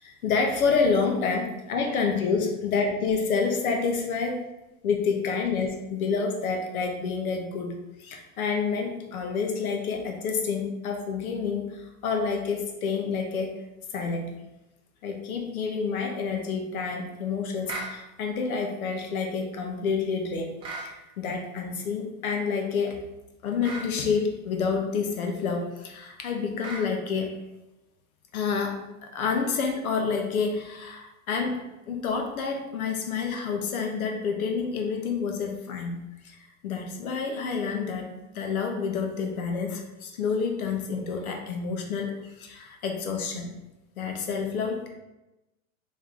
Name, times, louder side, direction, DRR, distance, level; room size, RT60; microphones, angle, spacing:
voice 1, 0.0-4.4 4.8-13.5 13.9-14.3 15.0-20.5 20.8-23.0 23.4-27.3 28.3-31.6 31.9-36.4 36.6-42.1 42.4-43.5 44.0-44.9, left 5 dB, 80° left, 3 dB, 1.0 m, -28 dB
sound 1, 17.7-17.9 20.6-20.9 23.6-23.9 26.6-26.9, right 2 dB, 15° right, 0.4 m, -35 dB
3.5 x 3.2 x 3.7 m, 0.97 s
hypercardioid pair, 135°, 42 cm